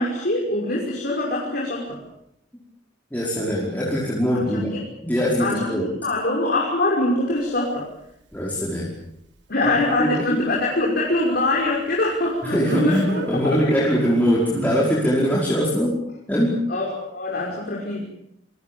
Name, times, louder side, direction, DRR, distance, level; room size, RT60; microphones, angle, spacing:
voice 1, 0.0-2.0 4.5-4.8 5.4-7.9 9.5-13.0 13.4-13.9 16.7-18.1, left 2 dB, 55° left, -3 dB, 5.7 m, -24 dB
voice 2, 3.1-4.7 5.0-5.9 8.3-8.9 9.6-9.7 10.0-10.1 10.4-10.5 12.4-16.0 16.3-16.5, equal, 10° left, -5 dB, 5.3 m, -22 dB
Speech, 7.4-7.5 12.7-13.3 14.5-14.8, right 2 dB, 70° right, 4.6 m, -28 dB
28.0 x 23.5 x 7.2 m, 0.76 s
head